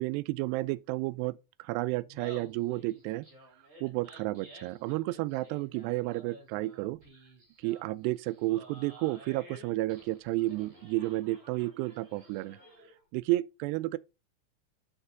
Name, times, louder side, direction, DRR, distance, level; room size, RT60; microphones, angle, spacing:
voice 1, 0.0-3.3 3.8-7.0 7.6-12.6 13.1-14.0, right 19 dB, 85° right, 2.6 m, -32 dB
Laughter, 2.0-13.0, right 1 dB, 20° right, 2.9 m, -53 dB
8.4 x 6.3 x 3.9 m
omnidirectional pair, 4.9 m